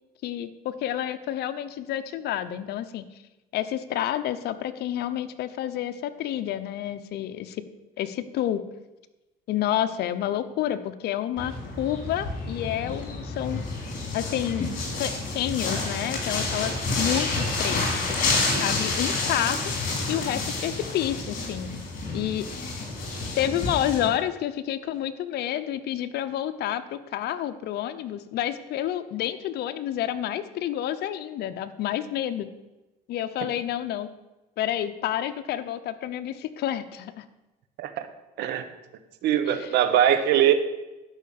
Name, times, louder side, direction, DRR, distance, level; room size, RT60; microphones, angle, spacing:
voice 1, 0.2-3.1 3.5-7.6 8.0-8.6 9.5-13.6 14.1-17.8 18.2-19.6 20.1-21.8 22.1-22.9 23.4-32.5 33.1-34.1 34.6-37.2 39.5-39.8, left 11 dB, 75° left, 9 dB, 0.9 m, -29 dB
sound 1, 11.4-24.1, left 3 dB, 50° left, 4.4 m, -29 dB
voice 2, 39.2-40.5, right 10 dB, 85° right, 10 dB, 1.2 m, -21 dB
12.0 x 5.8 x 8.5 m, 1.1 s
cardioid pair, 110°, 17 cm